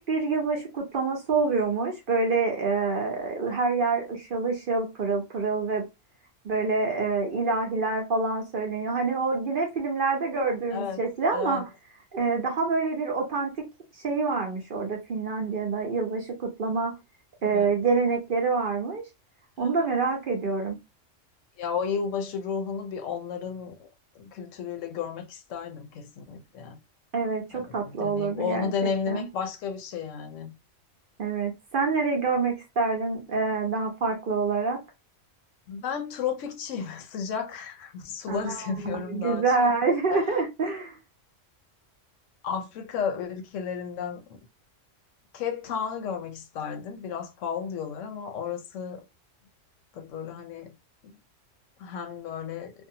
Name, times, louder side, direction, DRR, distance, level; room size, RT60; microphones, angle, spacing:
voice 1, 0.1-5.8 6.4-11.6 12.1-13.5 14.0-16.9 17.4-19.0 19.6-20.8 27.1-29.3 31.2-34.8 38.3-41.0, right 4 dB, 55° right, 0.7 m, -27 dB
voice 2, 11.3-11.6 17.4-17.7 19.6-19.8 21.6-23.9 24.2-26.8 27.5-30.5 35.7-39.7 40.1-40.3 42.4-44.4 45.3-49.0 49.9-50.7 51.0-51.2 51.8-52.7, left 6 dB, 80° left, 0.9 m, -33 dB
2.6 x 2.2 x 2.6 m
omnidirectional pair, 1.3 m